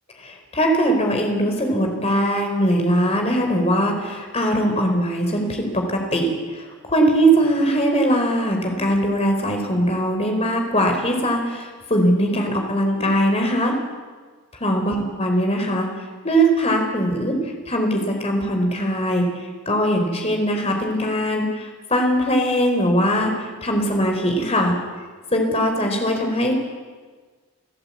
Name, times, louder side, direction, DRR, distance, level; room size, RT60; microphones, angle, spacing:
voice 1, 0.2-13.7 14.6-15.9 16.2-17.4 17.7-24.8 25.3-26.5, equal, 30° left, 3 dB, 4.5 m, -21 dB
29.5 x 16.0 x 8.8 m, 1.5 s
head